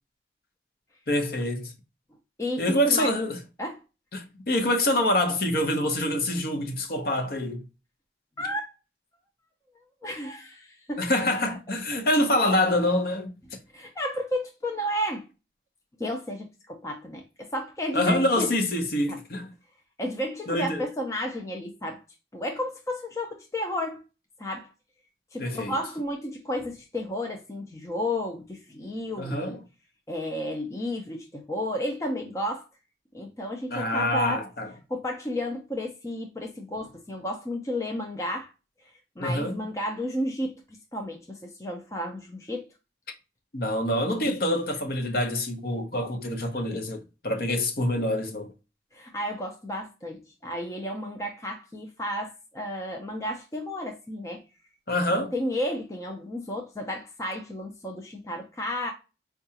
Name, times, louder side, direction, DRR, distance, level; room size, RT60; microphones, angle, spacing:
voice 1, 1.1-1.7 2.6-3.4 4.1-7.6 11.0-13.3 17.9-19.5 20.5-20.9 25.4-25.7 29.2-29.6 33.7-34.7 39.2-39.6 43.5-48.5 54.9-55.3, left 1 dB, 55° left, 0.7 m, -26 dB
voice 2, 2.4-3.1 3.6-3.8 8.4-8.7 10.0-11.0 13.7-15.2 16.0-18.5 19.1-19.2 20.0-22.0 22.3-24.0 24.4-24.7 25.3-29.6 30.1-32.6 33.1-34.4 34.9-38.5 39.2-40.6 40.9-42.7 48.9-54.4 55.1-58.9, left 1 dB, 15° left, 0.4 m, -32 dB
4.6 x 2.3 x 2.7 m
head